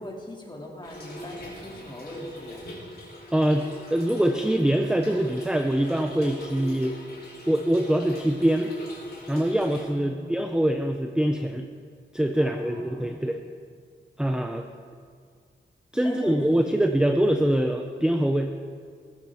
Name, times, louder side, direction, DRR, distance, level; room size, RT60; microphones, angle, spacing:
voice 1, 0.0-2.6 9.9-10.4 12.4-13.4 16.0-16.8, left 1 dB, 25° left, -1 dB, 2.4 m, -40 dB
Trickle dribble / Fill (with liquid), 0.8-9.8, equal, 55° left, 3.6 m, -40 dB
voice 2, 3.3-7.0 7.5-8.7 9.3-11.7 12.1-13.4 14.2-14.6 15.9-18.5, right 1 dB, 5° right, 5 dB, 0.6 m, -24 dB
16.5 x 15.0 x 3.5 m, 2.1 s
wide cardioid pair, 100°, 20 cm